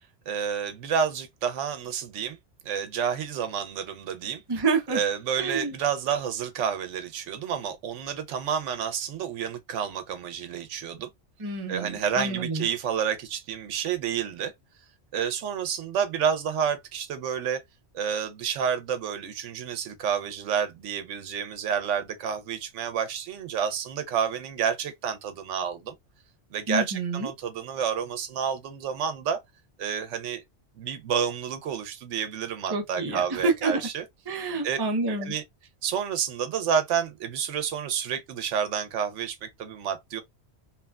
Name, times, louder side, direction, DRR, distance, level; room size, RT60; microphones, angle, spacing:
voice 1, 0.3-2.4 2.6-4.4 4.9-11.1 11.7-14.5 15.1-17.6 17.9-25.9 26.5-29.4 29.8-30.4 30.8-34.0 34.6-34.8 35.2-35.4 35.8-40.2, right 7 dB, 85° right, 0.9 m, -29 dB
voice 2, 4.5-5.0 5.4-5.7 11.4-12.7 26.7-27.3 32.7-33.8 34.3-35.3, right 3 dB, 30° right, 0.5 m, -28 dB
3.0 x 2.2 x 2.2 m
omnidirectional pair, 1.2 m